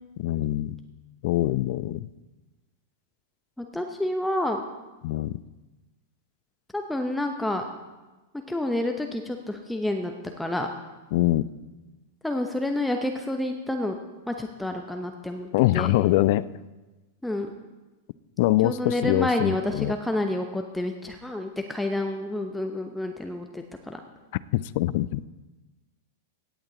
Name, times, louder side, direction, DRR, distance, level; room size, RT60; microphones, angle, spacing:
voice 1, 0.2-0.8 1.2-2.1 5.0-5.4 11.1-11.5 15.5-16.5 18.4-19.9 24.5-25.2, left 16 dB, 50° left, 17 dB, 0.3 m, -24 dB
voice 2, 3.6-4.6 6.7-7.6 8.5-10.7 12.2-14.0 14.3-15.9 17.2-17.5 18.6-24.0, left 1 dB, 5° left, 4 dB, 0.8 m, -29 dB
17.0 x 8.7 x 3.9 m, 1.2 s
figure-of-eight pair, 95°, 0 cm